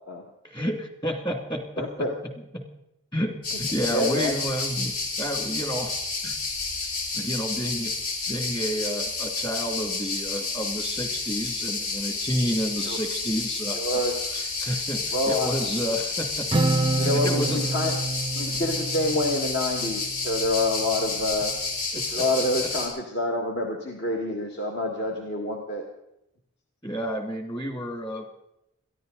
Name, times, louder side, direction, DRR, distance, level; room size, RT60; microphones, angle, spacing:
voice 1, 0.4-2.6 3.1-5.9 6.2-6.4 7.1-7.9 8.3-14.0 14.3-16.5 17.0-17.6 21.9-22.2 26.8-28.3, equal, 20° left, 5 dB, 2.3 m, -30 dB
voice 2, 1.8-2.1 3.9-4.4 12.8-13.0 13.7-14.2 15.1-15.7 16.9-18.0 18.3-21.5 21.9-25.9, left 1 dB, 50° left, 1 dB, 1.8 m, -27 dB
sound 1, 3.4-22.9, left 3 dB, 80° left, 4.6 m, -30 dB
Acoustic guitar, 16.5-20.2, right 2 dB, 20° right, 0.6 m, -27 dB
22.0 x 14.5 x 4.0 m, 0.82 s
head